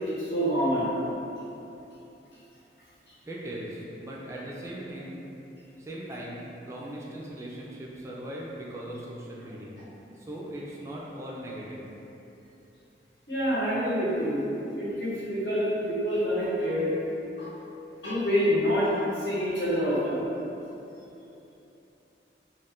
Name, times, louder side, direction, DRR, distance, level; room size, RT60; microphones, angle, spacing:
voice 1, 0.2-0.9 13.3-14.4 14.8-16.9 17.4-17.5 18.0-18.9 19.2-20.2, equal, 80° left, -10 dB, 1.0 m, -26 dB
voice 2, 3.3-5.2 5.8-9.8 10.1-11.9, right 1 dB, 15° right, -4 dB, 0.3 m, -39 dB
2.5 x 2.4 x 3.4 m, 2.9 s
head